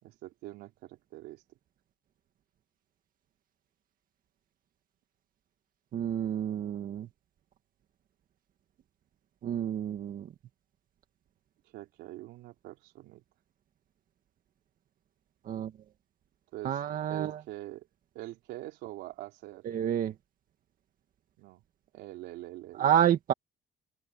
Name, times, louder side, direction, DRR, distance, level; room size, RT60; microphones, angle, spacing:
voice 1, 0.0-1.4 11.7-13.2 16.5-16.8 17.1-17.9 18.1-19.7 21.4-21.6 21.9-22.9, right 16 dB, 85° right, 3.8 m, -44 dB
voice 2, 5.9-7.1 9.4-10.3 15.4-15.7 16.6-17.4 19.6-20.1 22.8-23.3, right 10 dB, 55° right, 1.9 m, -29 dB
open air
cardioid pair, 110°, 17 cm